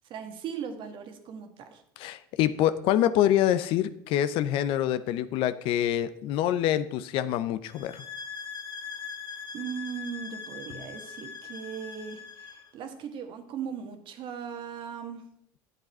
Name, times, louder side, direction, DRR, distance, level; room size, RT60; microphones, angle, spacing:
voice 1, 0.1-1.8 9.5-15.3, right 7 dB, 55° right, 6 dB, 1.4 m, -38 dB
voice 2, 2.0-8.0, left 11 dB, 65° left, 13 dB, 0.6 m, -26 dB
sound 1, 7.6-12.7, left 6 dB, 45° left, 1.9 m, -41 dB
8.5 x 8.1 x 4.3 m, 0.71 s
supercardioid pair, 90°, 10 cm